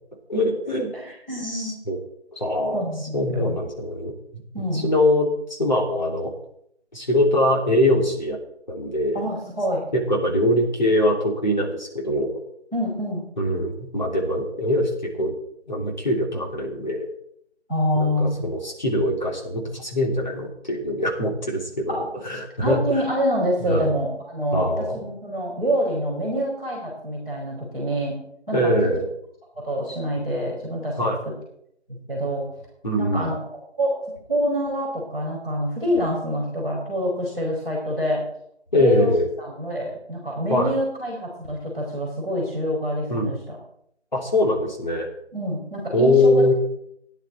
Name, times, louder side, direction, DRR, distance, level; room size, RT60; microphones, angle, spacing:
voice 1, 0.3-0.9 1.4-2.0 2.3-2.8 3.1-4.4 4.8-6.3 6.9-8.4 8.7-9.2 9.9-12.4 13.4-15.3 15.7-17.1 18.0-23.0 23.6-23.9 24.5-25.0 28.5-29.1 31.0-31.2 32.8-33.3 38.7-39.3 40.5-40.7 43.1-43.3 44.1-45.1 45.9-46.5, left 1 dB, 40° left, -1 dB, 3.0 m, -22 dB
voice 2, 0.9-1.8 2.7-3.6 4.5-4.8 9.1-9.8 12.7-13.2 17.7-18.3 21.9-22.1 22.6-28.2 28.5-28.7 29.5-31.0 31.9-32.5 33.0-33.4 33.8-33.9 34.3-38.2 38.7-39.1 39.4-43.6 45.3-46.5, equal, 5° left, -10 dB, 3.2 m, -26 dB
14.5 x 10.5 x 4.3 m, 0.71 s
figure-of-eight pair, 170°, 34 cm